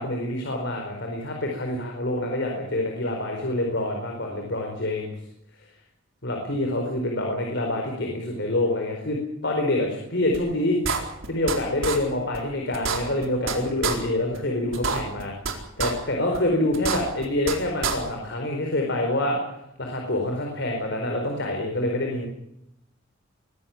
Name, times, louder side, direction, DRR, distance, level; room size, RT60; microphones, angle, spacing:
voice 1, 0.0-5.1 6.2-10.8 11.2-15.3 15.8-19.4 19.8-22.3, left 1 dB, 60° left, 2 dB, 4.5 m, -26 dB
sound 1, 10.3-10.4 10.8-11.5 11.8-12.0 12.3-12.4 12.7-13.5 13.8-13.9 14.3-14.4 14.7-15.5 15.8-15.9 16.3-16.4 16.7-17.5 17.8-17.9, right 5 dB, 80° right, 4.4 m, -26 dB
23.0 x 15.5 x 8.9 m, 0.82 s
head